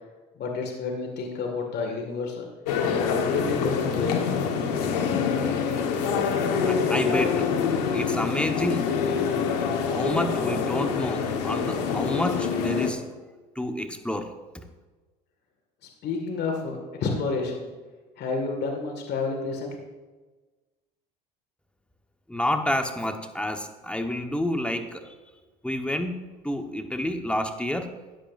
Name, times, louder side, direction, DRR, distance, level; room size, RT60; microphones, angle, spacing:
voice 1, 0.4-2.5 2.9-4.2 16.0-17.6 18.2-19.7, left 4 dB, 55° left, 2 dB, 2.1 m, -30 dB
sound 1, 2.7-12.9, left 6 dB, 85° left, 1.4 m, -25 dB
voice 2, 6.6-7.5 7.9-9.0 9.9-13.0 13.5-14.3 22.3-25.1 25.6-27.9, left 1 dB, 5° left, 5 dB, 1.3 m, -29 dB
14.5 x 10.0 x 2.7 m, 1.3 s
hypercardioid pair, 75°, 20 cm